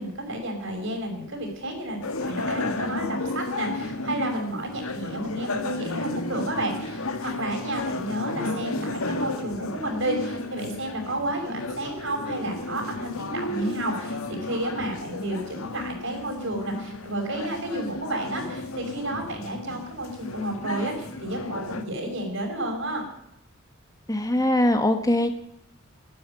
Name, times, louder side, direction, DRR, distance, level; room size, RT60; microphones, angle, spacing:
voice 1, 0.0-23.0, right 1 dB, 65° right, 3 dB, 6.0 m, -31 dB
sound 1, 2.0-21.8, left 2 dB, 90° left, 1.8 m, -33 dB
voice 2, 24.1-25.3, left 1 dB, 15° left, 7 dB, 1.3 m, -21 dB
13.0 x 12.5 x 9.0 m, 0.76 s
head